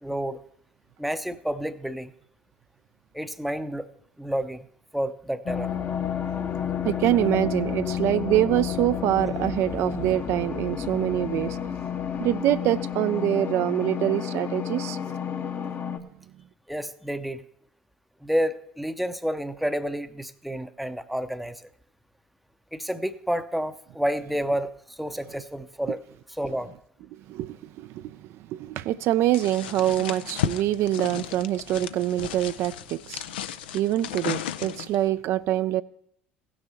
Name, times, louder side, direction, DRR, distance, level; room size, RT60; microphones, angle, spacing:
voice 1, 0.0-0.4 1.0-2.1 3.1-3.9 4.2-4.6 4.9-5.7 16.7-17.4 18.2-21.7 22.7-24.7 25.0-26.0 26.4-26.7, equal, ahead, 0.6 m, -29 dB
sound 1, 5.5-16.0, left 8 dB, 40° left, 0.8 m, -31 dB
voice 2, 6.8-11.6 12.2-15.0 27.3-28.2 28.5-33.2 33.7-35.8, right 13 dB, 60° right, 0.3 m, -25 dB
sound 2, 29.3-35.0, left 11 dB, 85° left, 0.4 m, -34 dB
16.0 x 6.4 x 4.4 m
hypercardioid pair, 70°, 5 cm